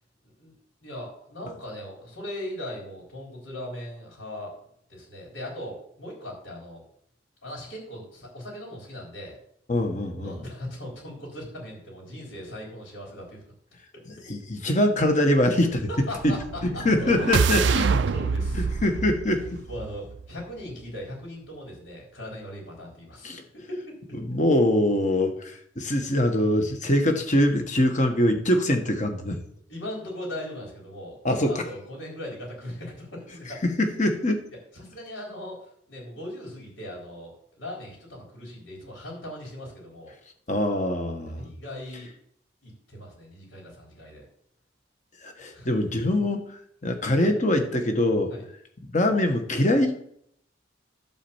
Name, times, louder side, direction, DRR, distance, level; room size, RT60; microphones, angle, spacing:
voice 1, 0.8-4.5 4.9-6.8 7.4-9.3 10.2-13.4 15.9-16.4 16.7-17.1 17.5-18.7 19.7-24.0 29.7-33.6 34.7-35.6 35.9-40.1 41.4-42.1 42.6-44.3 45.5-45.7 48.3-48.5, left 1 dB, 80° left, -2 dB, 4.1 m, -39 dB
voice 2, 9.7-10.4 14.3-15.9 16.2-16.3 16.8-17.8 18.6-19.6 23.2-23.4 24.2-29.4 31.2-31.7 33.8-34.5 40.5-41.5 45.2-48.3 48.9-49.9, left 1 dB, 40° left, 5 dB, 1.5 m, -23 dB
sound 1, 16.2-20.4, right 5 dB, 70° right, 0.4 m, -26 dB
11.5 x 4.3 x 7.2 m, 0.69 s
head